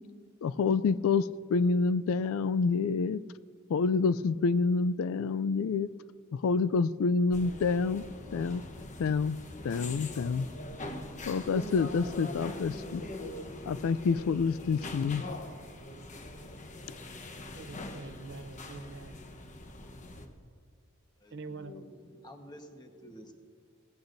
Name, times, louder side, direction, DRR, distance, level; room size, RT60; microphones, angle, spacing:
voice 1, 0.4-3.2 3.7-5.9 6.3-8.0 8.3-8.6 9.0-9.4 9.6-10.5 11.3-13.0 13.7-15.2, left 4 dB, 75° left, 16 dB, 0.3 m, -28 dB
sound 1, 7.3-20.3, left 1 dB, 35° left, 1.0 m, -42 dB
voice 2, 17.6-19.2 21.3-21.7, right 3 dB, 55° right, 9 dB, 0.7 m, -44 dB
voice 3, 21.2-23.3, left 1 dB, 20° left, 4 dB, 1.2 m, -50 dB
19.0 x 16.0 x 2.6 m, 2.1 s
head